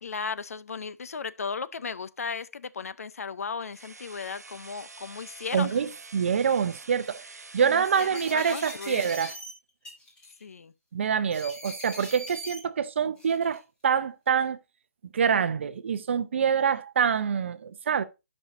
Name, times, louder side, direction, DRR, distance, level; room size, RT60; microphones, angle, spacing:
voice 1, 0.0-5.8 7.6-9.1 10.4-10.7, left 5 dB, 70° left, 0.6 m, -36 dB
sound 1, 3.7-9.4, right 3 dB, 85° right, 0.9 m, -47 dB
sound 2, 4.4-4.5 5.1-5.7 6.5-6.7 7.0-7.2 7.9-9.5 9.8-10.4 11.3-12.6 13.2-13.6, equal, 10° left, 1.6 m, -42 dB
voice 2, 5.5-5.9 6.1-7.3 7.5-9.3 10.9-14.6 15.1-18.0, right 7 dB, 50° right, 0.7 m, -26 dB
12.0 x 5.5 x 2.6 m
hypercardioid pair, 155°, 8 cm